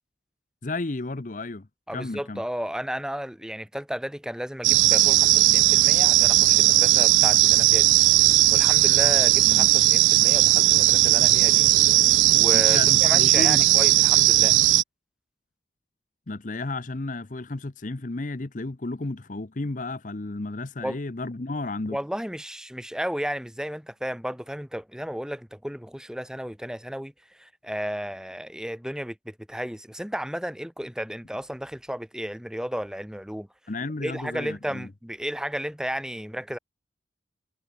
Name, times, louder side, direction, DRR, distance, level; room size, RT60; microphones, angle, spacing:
voice 1, 0.6-2.4 9.5-9.7 12.5-13.7 16.3-22.0 33.7-34.9, left 2 dB, 45° left, 0.8 m, -33 dB
voice 2, 1.9-7.9 8.3-11.7 12.3-14.6 20.8-21.0 21.9-33.5 34.0-36.6, equal, 5° right, 1.2 m, -33 dB
sound 1, 4.6-14.8, right 16 dB, 85° right, 0.5 m, -18 dB
head